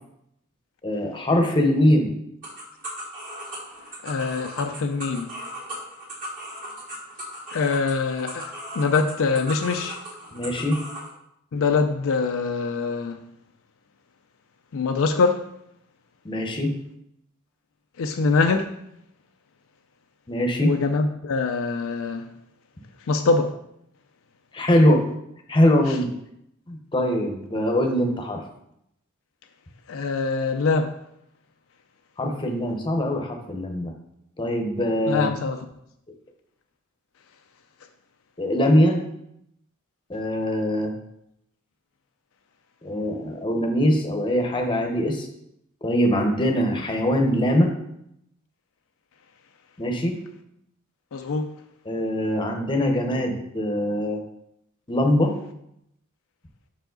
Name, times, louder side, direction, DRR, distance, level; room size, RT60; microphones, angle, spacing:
voice 1, 0.8-2.1 10.3-10.8 16.2-16.7 20.3-20.7 24.5-25.0 25.5-26.1 26.7-28.4 32.2-33.9 34.4-35.3 38.4-39.0 40.1-40.9 42.8-45.3 45.8-47.7 49.8-50.2 51.9-54.2 54.9-55.3, equal, 20° left, 0.8 m, -22 dB
sound 1, 2.4-11.1, right 1 dB, 40° right, 1.7 m, -37 dB
voice 2, 4.0-5.3 7.5-10.0 11.5-13.2 14.7-15.5 18.0-18.7 20.6-22.3 23.0-23.5 25.9-26.0 29.9-31.0 35.1-35.7 51.1-51.5, left 4 dB, 65° left, 0.4 m, -24 dB
5.7 x 4.8 x 3.8 m
head